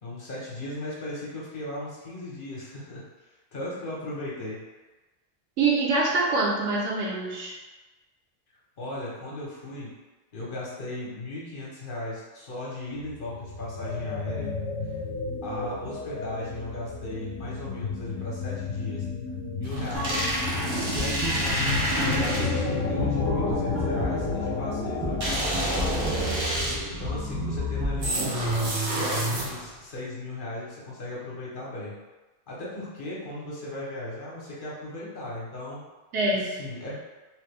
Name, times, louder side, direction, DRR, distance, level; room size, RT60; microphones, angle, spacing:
voice 1, 0.0-4.6 8.8-9.9 10.3-14.5 14.8-15.0 15.4-19.1 19.6-20.3 20.8-26.4 26.9-28.3 28.9-31.9 32.5-35.8 36.4-36.9, left 1 dB, 50° left, -5 dB, 0.9 m, -37 dB
voice 2, 5.6-7.5 36.1-36.6, right 3 dB, 70° right, -4 dB, 1.0 m, -25 dB
sound 1, 12.9-27.1, left 4 dB, 75° left, 0.9 m, -32 dB
sound 2, 19.6-22.8 25.2-27.0 28.0-29.8, right 1 dB, 90° right, 1.2 m, -28 dB
sound 3, 19.9-28.1, left 1 dB, 20° right, 0.5 m, -32 dB
3.0 x 2.2 x 3.3 m, 1.2 s
omnidirectional pair, 1.3 m